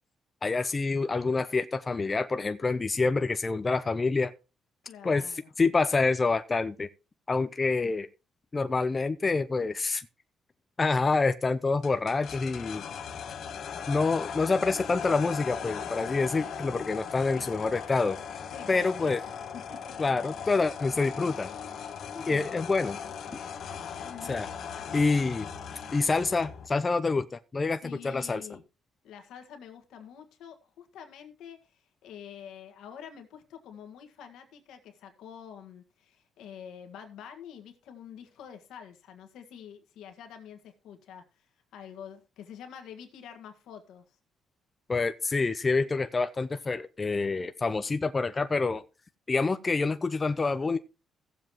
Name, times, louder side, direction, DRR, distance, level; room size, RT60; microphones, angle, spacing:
voice 1, 0.4-4.3 5.0-5.2 5.6-6.9 7.3-8.1 8.5-10.1 10.8-12.8 13.9-18.2 18.7-19.2 20.0-21.5 22.2-23.0 24.3-24.5 24.9-25.5 25.9-28.4 44.9-48.8 49.3-50.8, left 3 dB, 30° left, 0.6 m, -27 dB
voice 2, 4.8-5.5 17.3-17.7 18.5-19.3 19.7-19.9 21.9-22.7 24.0-24.5 27.8-28.6 29.0-41.4 41.7-44.2, left 8 dB, 85° left, 1.7 m, -47 dB
sound 1, 11.8-26.7, left 7 dB, 65° left, 1.2 m, -39 dB
16.5 x 7.4 x 3.0 m
cardioid pair, 90°, 0 cm